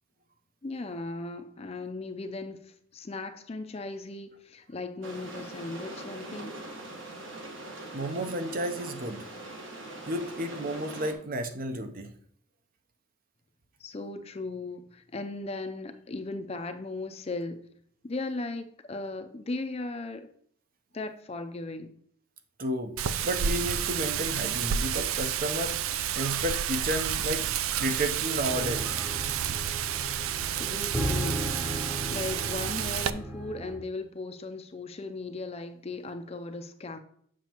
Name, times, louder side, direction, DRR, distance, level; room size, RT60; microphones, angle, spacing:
voice 1, 0.6-6.6 13.8-17.6 18.0-20.3 20.9-21.9 30.5-31.4 31.8-37.0, left 2 dB, 30° left, 0.4 m, -37 dB
sound 1, 5.0-11.1, right 2 dB, 65° right, 1.3 m, -42 dB
voice 2, 7.9-9.3 10.1-12.1 22.6-27.5 27.8-28.9, right 1 dB, 40° right, 0.6 m, -32 dB
Wind, 23.0-33.1, right 9 dB, 80° right, 0.4 m, -30 dB
sound 2, 28.5-33.8, right 1 dB, 10° right, 0.8 m, -35 dB
7.3 x 6.1 x 2.9 m
head